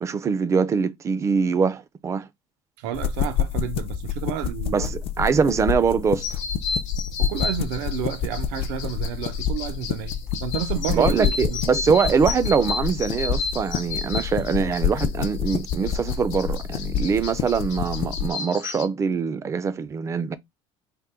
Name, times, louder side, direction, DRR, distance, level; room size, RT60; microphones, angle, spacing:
voice 1, 0.0-2.3 4.7-6.4 10.9-20.3, right 6 dB, 25° right, 0.4 m, -23 dB
voice 2, 2.8-4.9 7.2-11.6, right 10 dB, 90° right, 0.7 m, -31 dB
sound 1, 2.9-18.3, left 8 dB, 50° left, 0.4 m, -28 dB
sound 2, 6.2-18.9, left 5 dB, 75° left, 0.8 m, -33 dB
3.6 x 2.2 x 4.3 m
cardioid pair, 125°, 12 cm